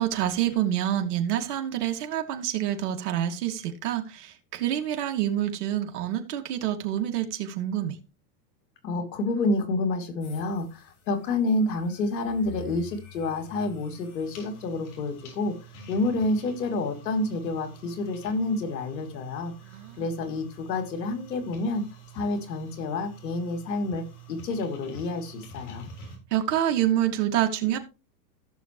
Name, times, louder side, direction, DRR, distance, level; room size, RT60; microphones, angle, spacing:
voice 1, 0.0-8.0 19.6-20.0 26.3-27.8, right 11 dB, 65° right, 2.5 m, -27 dB
voice 2, 8.8-15.5 15.9-19.5 20.0-21.8 22.1-24.0 24.3-25.9, left 2 dB, 80° left, 3.0 m, -28 dB
sound 1, 10.2-26.2, right 3 dB, 60° left, 7.4 m, -48 dB
16.0 x 7.3 x 3.1 m
supercardioid pair, 130°, 50 cm